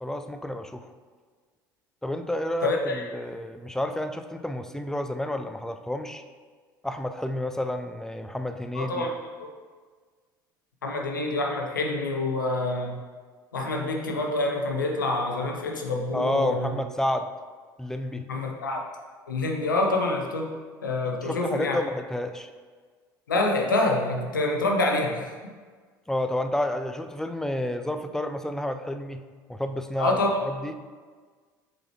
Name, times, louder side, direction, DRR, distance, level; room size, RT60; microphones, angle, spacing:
voice 1, 0.0-0.9 2.0-6.2 6.8-9.1 16.1-17.3 17.8-18.3 21.2-22.5 26.1-30.7, left 1 dB, 5° left, 8 dB, 0.5 m, -30 dB
voice 2, 2.6-3.1 8.7-9.1 9.4-9.5 10.8-13.0 13.5-16.8 18.1-18.8 19.3-21.8 23.3-25.3 30.0-30.4, left 2 dB, 90° left, 1 dB, 0.7 m, -27 dB
7.6 x 4.3 x 3.0 m, 1.5 s
hypercardioid pair, 65°, 10 cm